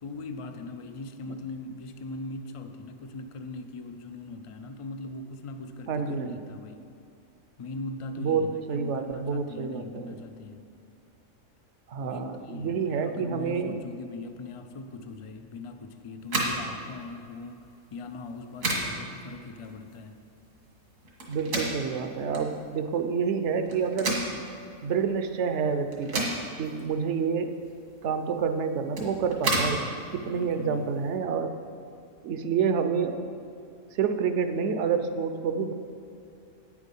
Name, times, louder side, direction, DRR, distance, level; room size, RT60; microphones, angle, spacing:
voice 1, 0.0-6.8 7.6-10.6 12.0-20.2 30.2-30.9, left 2 dB, 55° left, 7 dB, 0.3 m, -40 dB
voice 2, 5.9-6.5 8.2-10.2 11.9-13.7 21.3-24.2 24.8-26.3 26.6-27.5 28.0-29.8 30.1-31.6 32.2-33.2 33.9-35.7, right 6 dB, 65° right, 9 dB, 0.9 m, -28 dB
sound 1, 16.2-31.2, right 2 dB, 80° right, 2.0 m, -34 dB
9.0 x 8.4 x 5.4 m, 2.5 s
omnidirectional pair, 1.4 m